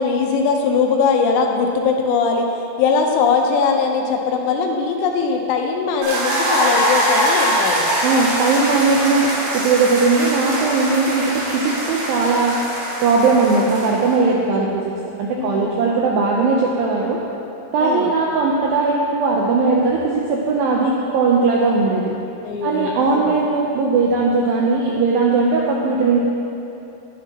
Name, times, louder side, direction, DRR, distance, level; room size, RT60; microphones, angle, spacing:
voice 1, 0.0-7.9 14.3-14.7 15.3-15.9 17.8-18.1 22.4-23.4, left 5 dB, 85° left, 2 dB, 2.9 m, -20 dB
sound 1, 6.0-14.1, equal, 60° right, 3.7 m, -22 dB
voice 2, 8.0-12.6 13.0-14.9 15.2-17.2 17.7-22.1 22.6-26.2, right 4 dB, 85° right, -2 dB, 2.1 m, -18 dB
10.5 x 10.0 x 2.9 m, 2.9 s
omnidirectional pair, 5.0 m